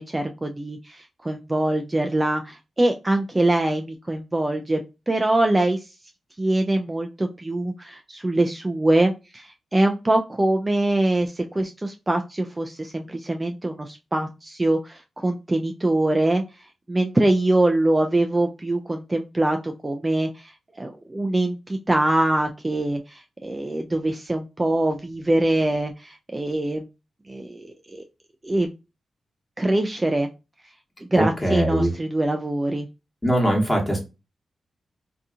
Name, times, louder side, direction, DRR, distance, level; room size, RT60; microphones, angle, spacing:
voice 1, 0.0-4.8 5.1-5.9 6.4-26.9 27.3-28.0 28.4-28.7 29.6-30.3 31.1-32.9, right 1 dB, 25° right, 5 dB, 0.3 m, -23 dB
voice 2, 31.2-31.9 33.2-34.0, right 1 dB, 15° left, 0 dB, 1.2 m, -21 dB
2.7 x 2.3 x 2.4 m, 0.27 s
cardioid pair, 60°, 0 cm